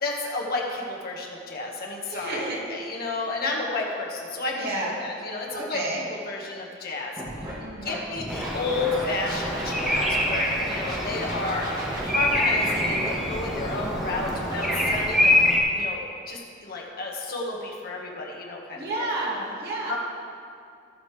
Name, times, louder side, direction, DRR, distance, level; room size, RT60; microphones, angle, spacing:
voice 1, 0.0-2.4 2.7-5.8 6.3-7.1 7.8-11.7 12.0-15.3 15.7-19.1 19.9-20.0, left 3 dB, 50° left, -1 dB, 1.6 m, -31 dB
voice 2, 2.1-2.6 4.5-5.0 5.5-6.0 7.6-8.0 18.7-20.0, right 2 dB, 55° right, -4 dB, 2.3 m, -31 dB
Scratching (performance technique), 7.2-7.5 7.9-10.4 10.7-14.9, equal, 20° right, 2.2 m, -34 dB
Bird vocalization bird call bird song, 8.3-15.6, left 1 dB, ahead, 1.4 m, -26 dB
18.5 x 6.4 x 3.3 m, 2.4 s
head